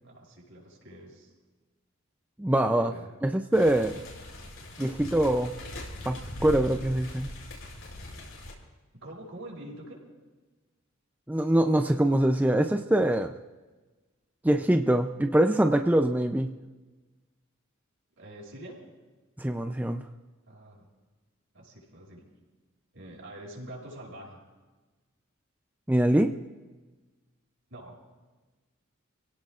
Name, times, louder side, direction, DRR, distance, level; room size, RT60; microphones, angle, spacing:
voice 1, 0.0-1.3 2.7-3.1 8.9-10.0 18.2-18.8 20.5-20.9 21.5-22.2 22.9-24.4 27.7-28.0, right 1 dB, 70° right, -2 dB, 6.2 m, -45 dB
voice 2, 2.4-2.9 3.2-4.0 4.8-5.5 6.1-7.3 11.3-13.3 14.4-16.5 19.4-20.0 25.9-26.3, right 1 dB, 10° right, 5 dB, 0.5 m, -24 dB
sound 1, 3.5-8.5, left 1 dB, 80° left, 6.2 m, -41 dB
29.5 x 17.0 x 2.5 m, 1.2 s
head